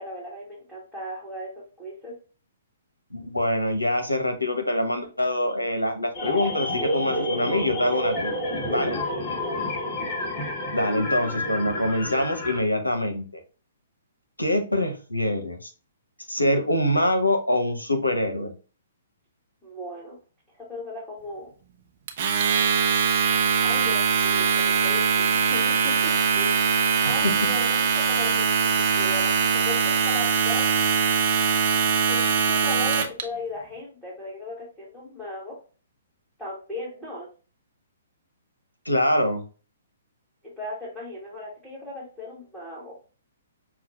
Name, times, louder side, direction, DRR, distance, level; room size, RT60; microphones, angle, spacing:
voice 1, 0.0-2.1 8.9-9.4 19.6-20.2 20.6-21.5 23.6-26.7 27.0-30.7 32.1-35.6 36.4-37.3 40.6-43.0, left 1 dB, 5° left, -8 dB, 1.4 m, -37 dB
voice 2, 3.1-8.3 8.7-9.0 10.7-13.4 14.4-15.7 16.3-18.5 27.2-27.5 38.9-39.4, left 1 dB, 90° left, 5 dB, 0.8 m, -24 dB
sound 1, 6.1-12.6, left 1 dB, 35° left, 1.0 m, -29 dB
Domestic sounds home sounds, 22.1-33.2, right 6 dB, 45° right, 0.7 m, -22 dB
5.7 x 2.3 x 2.4 m, 0.36 s
figure-of-eight pair, 120°, 0 cm